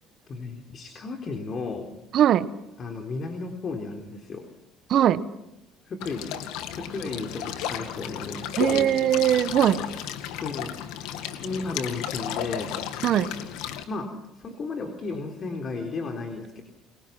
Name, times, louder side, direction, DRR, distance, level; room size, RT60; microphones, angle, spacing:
voice 1, 0.3-1.9 2.8-4.4 5.9-6.2 6.7-8.9 10.4-12.8 13.9-14.1 14.4-16.6, left 3 dB, 45° left, 4 dB, 3.9 m, -34 dB
voice 2, 2.1-2.5 4.9-5.3 8.6-9.8 13.0-13.3, right 11 dB, 60° right, 14 dB, 1.2 m, -20 dB
sound 1, 6.0-13.8, left 10 dB, 80° left, 2.1 m, -34 dB
30.0 x 22.5 x 6.0 m, 0.91 s
supercardioid pair, 85°, 0 cm